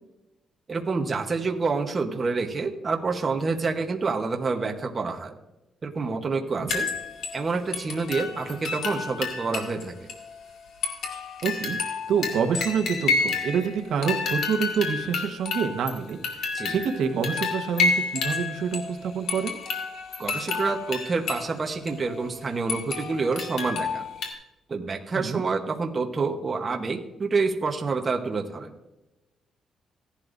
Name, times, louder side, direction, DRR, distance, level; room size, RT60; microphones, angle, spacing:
voice 1, 0.7-5.4 5.8-6.9 7.3-10.1 16.5-16.8 20.2-24.1 24.7-28.7, right 4 dB, 25° right, 3 dB, 1.0 m, -28 dB
sound 1, 6.7-7.4 7.7-9.8 10.1-10.2 10.8-13.7 14.0-18.9 19.3-21.5 21.9-22.0 22.7-24.3, left 4 dB, 80° left, 2.3 m, -29 dB
voice 2, 11.4-19.5 25.1-25.4, right 6 dB, 70° right, 5 dB, 1.2 m, -27 dB
16.5 x 11.5 x 2.6 m, 0.99 s
cardioid pair, 170°, 0 cm